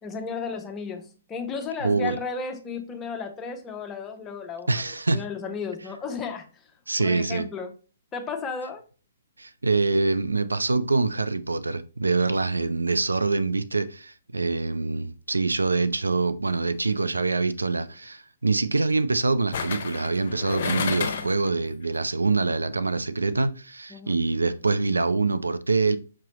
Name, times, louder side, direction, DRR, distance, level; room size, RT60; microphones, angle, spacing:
voice 1, 0.0-6.5 7.0-7.8 8.1-8.8 23.9-24.2, left 5 dB, 20° left, 0.8 m, -34 dB
voice 2, 1.8-2.2 4.7-5.2 6.9-7.5 9.4-26.0, right 3 dB, 85° right, 0.4 m, -25 dB
sound 1, 16.9-17.2 19.5-21.5 21.8-21.9, left 6 dB, 55° left, 0.7 m, -31 dB
5.9 x 3.0 x 2.9 m
figure-of-eight pair, 130°, 0 cm